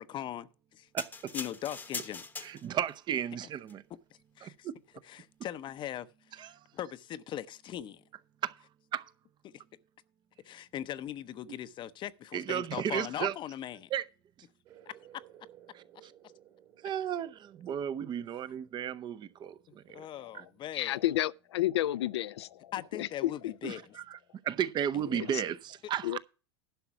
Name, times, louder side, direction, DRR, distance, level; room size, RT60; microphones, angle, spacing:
voice 1, 0.0-0.9 1.3-2.2 4.4-4.7 5.1-6.1 6.3-6.5 6.7-8.0 10.4-13.9 19.9-21.0 22.7-23.8, left 11 dB, 35° left, 0.7 m, -40 dB
voice 2, 0.9-1.3 2.4-3.8 4.4-4.8 6.4-6.6 8.4-8.5 8.9-9.1 12.3-13.3 13.9-14.1 15.7-16.1 16.8-20.1 20.3-20.4 23.6-24.2 24.4-26.2, right 9 dB, 30° right, 0.7 m, -34 dB
sound 1, 1.0-2.9 3.6-3.7, left 4 dB, 10° left, 1.0 m, -41 dB
sound 2, 14.6-20.8, right 11 dB, 50° right, 2.7 m, -59 dB
voice 3, 20.7-23.5 25.1-25.3 26.0-26.2, left 14 dB, 80° left, 0.5 m, -31 dB
11.5 x 5.9 x 5.9 m
hypercardioid pair, 105°, 14 cm